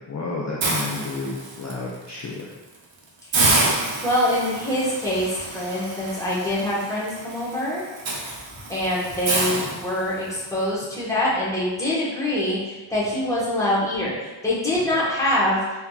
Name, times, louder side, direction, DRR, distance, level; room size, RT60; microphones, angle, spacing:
voice 1, 0.1-2.5, left 3 dB, 40° left, -4 dB, 0.5 m, -31 dB
Hiss, 0.6-1.7 2.2-2.4 2.7-2.8 3.3-10.4, right 2 dB, 75° right, 0.7 m, -27 dB
voice 2, 3.9-7.8 8.7-15.6, left 1 dB, 5° left, -8 dB, 1.2 m, -24 dB
3.5 x 2.8 x 2.3 m, 1.2 s
wide cardioid pair, 45°, 46 cm